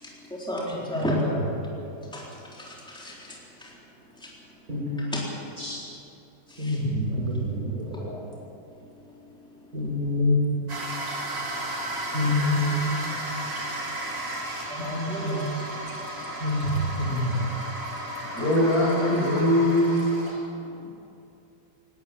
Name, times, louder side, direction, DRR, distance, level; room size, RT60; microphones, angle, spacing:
voice 1, 0.3-1.4 2.1-2.2 2.6-3.7 5.1-5.2 6.6-6.8 14.7-15.4, equal, ahead, -4 dB, 3.9 m, -32 dB
voice 2, 4.7-5.0 5.6-5.7 6.6-8.1 9.7-10.4 12.1-12.8 14.8-15.4 16.4-16.7 17.0-17.2, left 2 dB, 45° right, -5 dB, 4.3 m, -26 dB
sound 1, 10.7-20.3, right 1 dB, 60° right, 3.6 m, -34 dB
voice 3, 18.4-20.1, left 1 dB, 45° left, -3 dB, 7.5 m, -22 dB
19.5 x 19.0 x 8.7 m, 2.7 s
omnidirectional pair, 2.2 m